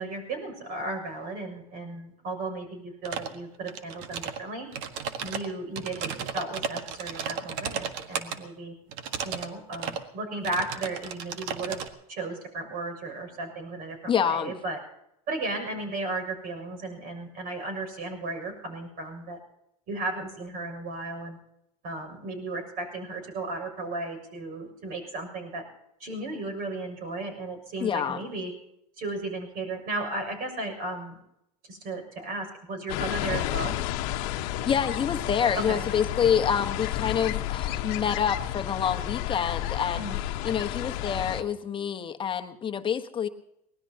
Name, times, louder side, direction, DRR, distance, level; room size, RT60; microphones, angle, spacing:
voice 1, 0.0-4.7 5.2-8.7 9.2-11.8 12.1-14.8 15.3-19.4 19.9-21.4 21.8-25.6 26.0-28.5 29.0-31.2 31.7-33.8 35.6-35.9 39.9-40.2, right 2 dB, 50° right, 5 dB, 6.7 m, -35 dB
Kinesis Cherry MX Brown Typing, 3.0-3.4 3.7-4.4 4.7-8.4 8.9-9.5 9.7-10.0 10.4-11.9, right 7 dB, 65° right, 1.6 m, -34 dB
voice 2, 14.1-14.5 27.8-28.2 34.6-40.1 40.4-43.3, left 8 dB, 25° left, 6 dB, 1.2 m, -27 dB
sound 1, 32.9-41.4, left 13 dB, 65° left, 1.2 m, -31 dB
24.0 x 19.0 x 2.9 m, 0.80 s
supercardioid pair, 110°, 19 cm